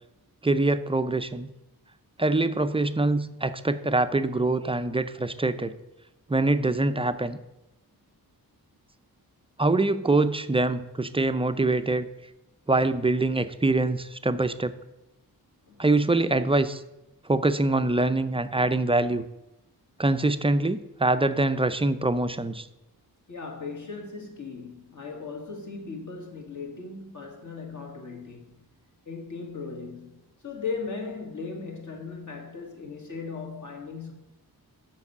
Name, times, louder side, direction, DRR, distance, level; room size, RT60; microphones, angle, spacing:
voice 1, 0.4-1.5 2.2-5.7 6.3-7.4 9.6-12.1 12.7-14.7 15.8-16.8 17.2-19.2 20.0-22.7, right 2 dB, 15° right, 0.4 m, -24 dB
voice 2, 23.3-28.6 29.1-34.1, left 4 dB, 50° left, 2.0 m, -37 dB
7.2 x 6.0 x 6.7 m
wide cardioid pair, 120°, 38 cm